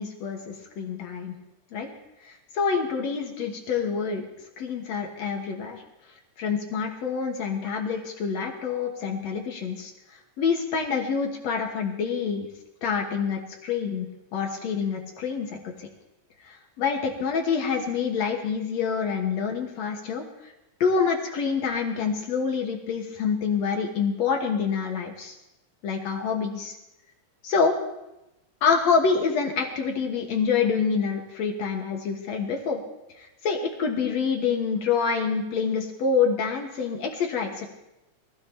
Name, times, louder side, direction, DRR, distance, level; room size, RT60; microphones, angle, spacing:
voice 1, 0.0-1.3 1.7-1.9 2.3-4.3 4.6-5.8 6.4-9.9 10.4-12.5 12.8-14.1 14.3-15.9 16.5-20.2 20.8-25.3 25.8-26.7 27.4-27.7 28.6-32.8 33.2-37.7, left 5 dB, 70° left, 2 dB, 2.6 m, -26 dB
23.0 x 16.0 x 2.9 m, 0.94 s
omnidirectional pair, 3.3 m